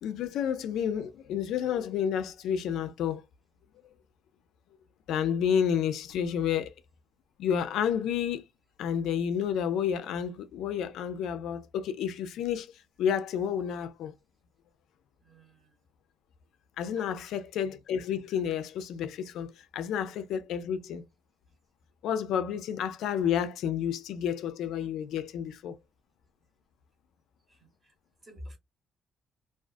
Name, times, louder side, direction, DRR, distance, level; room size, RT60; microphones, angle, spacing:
voice 1, 0.0-3.2 5.1-6.7 7.4-8.4 8.8-12.7 13.0-14.1 16.8-21.0 22.0-25.8, left 8 dB, 75° left, 0.3 m, -30 dB
voice 2, 15.2-15.7 17.0-17.2 27.5-27.9 28.2-28.6, equal, 20° right, 0.8 m, -49 dB
2.3 x 2.3 x 2.4 m
cardioid pair, 175°, 0 cm